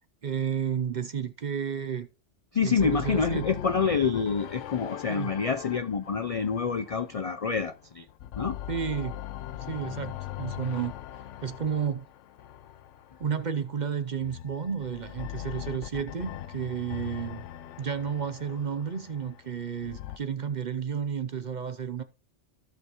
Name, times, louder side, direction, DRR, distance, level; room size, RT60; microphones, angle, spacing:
voice 1, 0.2-2.1 2.6-3.5 5.1-5.3 8.7-9.2 9.7-10.9 11.4-12.1 13.2-17.4 17.8-22.0, right 7 dB, 45° right, 0.7 m, -32 dB
voice 2, 2.5-8.1 8.4-8.6, left 5 dB, 55° left, 0.4 m, -27 dB
sound 1, 2.8-7.7 8.1-13.4 14.2-20.2, left 12 dB, 80° left, 1.0 m, -40 dB
15.5 x 5.5 x 3.0 m
omnidirectional pair, 1.2 m